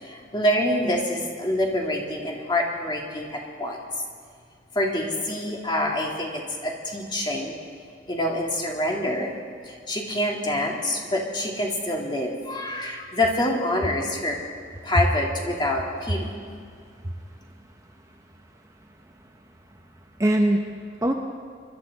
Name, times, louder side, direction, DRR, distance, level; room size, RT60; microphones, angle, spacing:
voice 1, 0.0-3.8 4.7-7.5 8.1-9.3 9.6-14.4 14.8-16.3, left 1 dB, 25° left, -1 dB, 2.2 m, -26 dB
voice 2, 16.7-17.3 18.8-19.1 20.2-21.1, right 1 dB, 20° right, 2 dB, 0.9 m, -24 dB
24.5 x 12.0 x 4.1 m, 2.2 s
head